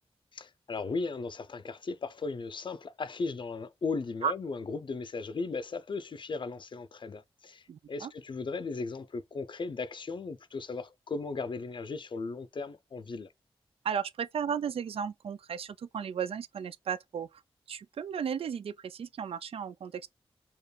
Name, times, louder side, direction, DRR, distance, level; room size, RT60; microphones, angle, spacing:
voice 1, 0.3-13.3, left 4 dB, 50° left, 0.5 m, -36 dB
voice 2, 7.7-8.1 13.8-17.4 17.7-20.1, right 7 dB, 70° right, 0.4 m, -34 dB
4.5 x 2.5 x 3.2 m
wide cardioid pair, 85°, 10 cm